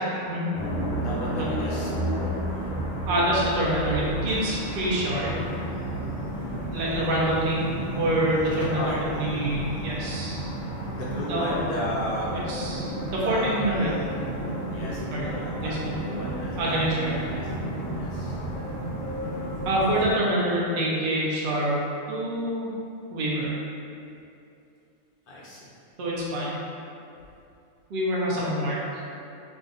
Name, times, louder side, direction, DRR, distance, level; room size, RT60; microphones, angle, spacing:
sound 1, 0.5-20.1, right 1 dB, 30° left, 0.8 m, -32 dB
voice 1, 1.0-2.7 8.5-9.0 11.0-12.3 13.2-13.6 14.7-15.8 16.1-17.5 18.0-18.4 19.7-19.9 23.3-23.4 25.3-25.7 28.3-28.4, left 1 dB, 65° left, -6 dB, 0.5 m, -35 dB
voice 2, 3.1-5.5 6.7-7.6 8.0-10.4 11.0-11.6 12.3-14.0 15.1-15.3 15.5-16.0 16.6-17.2 19.6-22.7 23.1-23.5 26.0-26.6 27.9-29.1, right 1 dB, 55° right, -5 dB, 0.7 m, -26 dB
2.4 x 2.4 x 3.9 m, 2.6 s
omnidirectional pair, 1.4 m